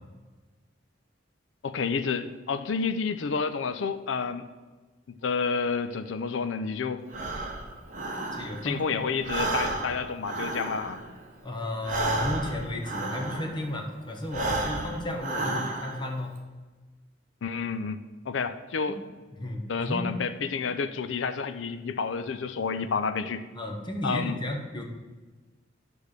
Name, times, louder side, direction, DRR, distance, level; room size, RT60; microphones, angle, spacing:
voice 1, 1.6-4.4 5.2-7.0 8.6-11.0 17.4-19.0 19.7-23.4 24.0-24.4, left 5 dB, 90° left, 10 dB, 0.5 m, -30 dB
Breathing, 7.1-8.8 9.1-13.7 14.2-16.1, right 2 dB, 45° right, 1.0 m, -32 dB
voice 2, 8.3-8.8 11.4-16.4 18.9-19.0 19.4-20.1 22.8-22.9 23.5-24.8, left 1 dB, 25° left, 1 dB, 1.1 m, -33 dB
10.0 x 3.5 x 6.5 m, 1.3 s
head